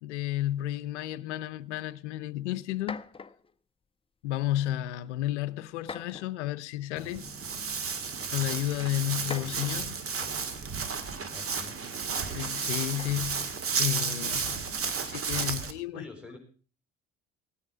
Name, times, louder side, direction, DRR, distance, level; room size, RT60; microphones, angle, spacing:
voice 1, 0.0-3.1 4.2-7.3 8.3-10.0 12.3-14.7 15.0-16.0, left 13 dB, 80° left, 0.6 m, -32 dB
sound 1, 2.1-2.2 2.7-3.5 4.4-4.8 5.8-6.5 7.6-7.7 9.1-10.6 12.9-13.4, left 5 dB, 15° left, 0.6 m, -43 dB
Walk footsteps, 7.0-15.7, right 5 dB, 40° right, 1.7 m, -32 dB
voice 2, 11.3-11.8 15.9-16.4, left 3 dB, 5° right, 5.0 m, -45 dB
16.5 x 9.8 x 4.8 m
hypercardioid pair, 55°, 35 cm